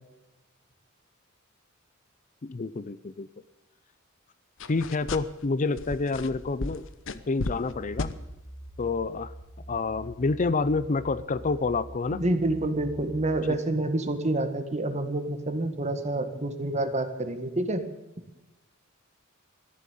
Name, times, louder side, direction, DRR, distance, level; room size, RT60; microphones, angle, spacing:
voice 1, 2.4-3.3 4.7-8.1 8.8-9.3 9.7-12.2, left 3 dB, 40° left, 15 dB, 0.5 m, -28 dB
sound 1, 4.6-5.5 5.8-7.7 8.0-8.2, left 2 dB, 65° left, 0.9 m, -34 dB
sound 2, 7.6-13.4, right 1 dB, 15° left, 2.5 m, -45 dB
voice 2, 12.2-17.8, right 2 dB, 35° right, 8 dB, 1.8 m, -28 dB
14.0 x 11.0 x 8.5 m, 0.99 s
head